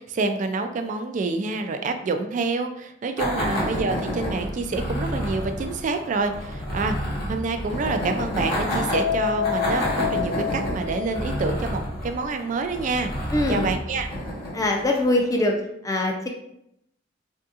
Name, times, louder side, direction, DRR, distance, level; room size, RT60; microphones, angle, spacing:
voice 1, 0.0-13.1 13.5-14.1, right 3 dB, 40° right, 7 dB, 0.3 m, -27 dB
sound 1, 3.2-15.3, equal, 50° left, 1.1 m, -29 dB
sound 2, 8.9-11.7, left 9 dB, 90° left, 0.9 m, -28 dB
voice 2, 13.3-13.7 14.5-15.6 15.8-16.3, left 1 dB, 20° left, 1 dB, 0.5 m, -23 dB
3.5 x 2.7 x 2.4 m, 0.76 s
head